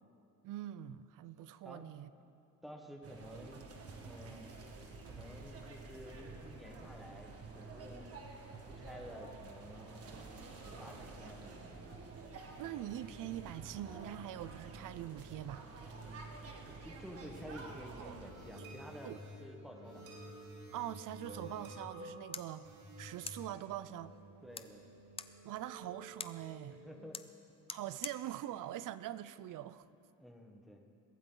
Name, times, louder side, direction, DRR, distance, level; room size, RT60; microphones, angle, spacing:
voice 1, 0.4-2.1 12.5-15.7 18.0-18.2 18.5-18.6 19.0-19.2 20.7-22.7 23.0-24.1 25.4-26.8 27.7-29.8, right 12 dB, 65° right, 15 dB, 0.6 m, -43 dB
voice 2, 1.6-2.0 2.6-3.6 4.0-4.5 5.1-8.1 8.7-10.0 10.6-11.6 16.4-19.1 19.4-20.0 24.4-24.8 26.7-27.2 30.2-30.9, equal, ahead, 1 dB, 1.3 m, -51 dB
sound 1, 3.0-18.3, right 3 dB, 45° right, 1.8 m, -49 dB
sound 2, 18.2-26.9, equal, 80° right, 4.6 m, -52 dB
sound 3, 22.3-29.9, left 5 dB, 15° left, 0.4 m, -51 dB
22.5 x 16.0 x 4.0 m, 2.7 s
cardioid pair, 165°, 34 cm